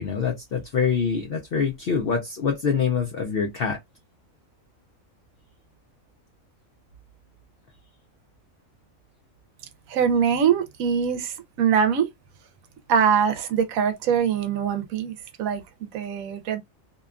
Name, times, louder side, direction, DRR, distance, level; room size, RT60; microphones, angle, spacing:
voice 1, 0.0-3.8, left 6 dB, 60° left, 0.6 m, -25 dB
voice 2, 9.9-12.1 12.9-15.6 15.9-16.6, right 7 dB, 80° right, 1.0 m, -23 dB
2.8 x 2.2 x 2.3 m
omnidirectional pair, 1.4 m